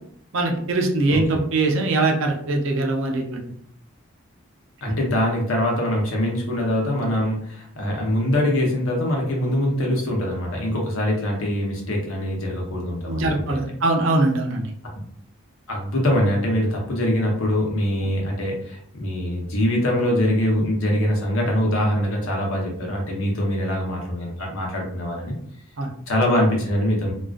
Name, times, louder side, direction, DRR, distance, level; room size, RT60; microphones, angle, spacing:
voice 1, 0.3-3.4 13.0-14.7 25.8-25.9, right 2 dB, 60° right, 2 dB, 0.5 m, -22 dB
voice 2, 4.8-13.6 15.7-25.3 26.1-27.1, left 1 dB, 70° left, -1 dB, 0.7 m, -23 dB
2.3 x 2.3 x 2.3 m, 0.64 s
head